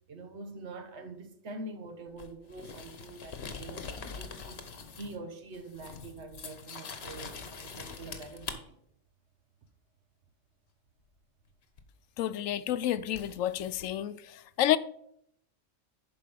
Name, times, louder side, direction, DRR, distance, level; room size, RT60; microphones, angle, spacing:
voice 1, 0.1-3.9 4.2-8.8, right 2 dB, 60° right, 1.3 m, -45 dB
Tape measure, 2.2-5.2 5.5-8.6 11.8-11.9 13.1-13.9, left 5 dB, 55° left, 1.2 m, -43 dB
voice 2, 12.2-14.2 14.6-14.8, left 12 dB, 85° left, 1.0 m, -29 dB
11.0 x 4.7 x 5.1 m
omnidirectional pair, 1.3 m